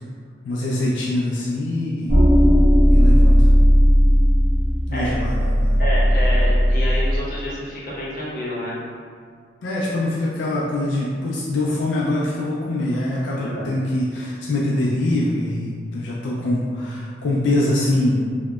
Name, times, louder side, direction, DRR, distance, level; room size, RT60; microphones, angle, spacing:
voice 1, 0.4-2.2 2.9-3.5 4.9-5.8 9.6-18.2, left 1 dB, 80° left, -5 dB, 0.3 m, -23 dB
sound 1, 2.1-7.2, equal, 50° right, 0.9 m, -15 dB
voice 2, 5.8-8.8 13.3-13.8, equal, 50° left, -7 dB, 0.6 m, -29 dB
2.8 x 2.0 x 2.2 m, 2.1 s
head